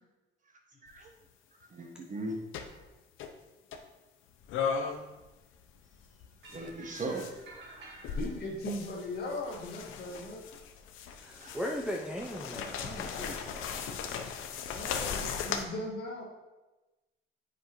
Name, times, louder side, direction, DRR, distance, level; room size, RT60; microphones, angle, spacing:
sound 1, 0.9-1.1 2.5-2.8 3.2-3.3 3.7-3.8 4.5-5.3 5.5-7.4 8.0-15.6, left 6 dB, 90° left, 0.6 m, -37 dB
voice 1, 1.7-2.4 6.5-8.2 11.4-11.6 14.7-14.8, right 2 dB, 40° right, 1 dB, 1.2 m, -39 dB
sound 2, 6.4-7.1 7.5-8.5, right 3 dB, 65° right, 1.6 m, -53 dB
voice 2, 8.1-10.4 14.7-16.2, left 1 dB, 55° left, -2 dB, 1.9 m, -38 dB
voice 3, 11.2-14.0, equal, 5° right, -2 dB, 0.6 m, -38 dB
7.7 x 5.2 x 3.1 m, 1.1 s
cardioid pair, 90°, 20 cm